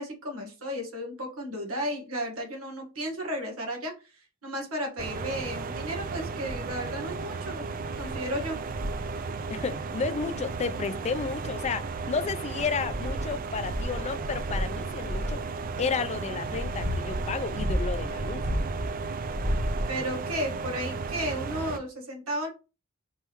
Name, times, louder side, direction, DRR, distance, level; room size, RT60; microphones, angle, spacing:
voice 1, 0.0-7.6 7.9-8.6 19.9-22.5, equal, 85° right, 1.6 m, -34 dB
sound 1, 5.0-21.8, right 4 dB, 40° right, 0.4 m, -35 dB
sound 2, 7.4-7.5 7.9-8.2 8.6-9.1 10.5-10.6 11.4-12.1 12.6-15.4 16.1-18.9 19.2-20.2 21.0-21.1, equal, 70° right, 1.4 m, -32 dB
voice 2, 9.5-15.4 15.8-18.4, left 5 dB, 30° left, 0.4 m, -32 dB
4.4 x 3.4 x 3.0 m
head